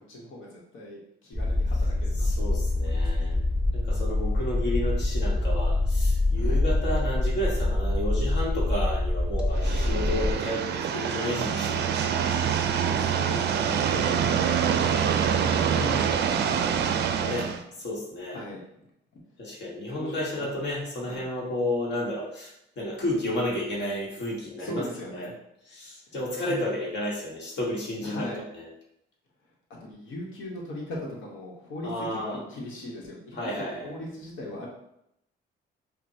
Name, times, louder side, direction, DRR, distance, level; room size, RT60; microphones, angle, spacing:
voice 1, 0.0-3.4 6.4-6.6 12.9-17.2 18.3-18.6 19.9-20.6 21.0-21.3 24.6-25.4 26.1-26.2 26.5-26.6 28.0-28.4 29.8-34.7, left 1 dB, 85° left, -3 dB, 1.1 m, -40 dB
sound 1, 1.3-10.3, left 2 dB, 25° left, 1.2 m, -25 dB
voice 2, 2.2-3.4 3.7-12.6 13.6-14.1 15.5-15.9 17.2-17.5 17.8-18.4 19.4-24.8 25.1-25.3 25.7-28.3 28.6-28.7 31.8-32.4 33.3-33.9, left 1 dB, 60° left, -3 dB, 1.2 m, -32 dB
sound 2, 7.0-7.8 9.4-10.3 12.1-12.8 13.8-14.0, equal, 5° right, 0.6 m, -44 dB
sound 3, 9.6-17.6, right 7 dB, 55° right, 0.4 m, -25 dB
5.2 x 2.2 x 2.7 m, 0.78 s
cardioid pair, 90°, 20 cm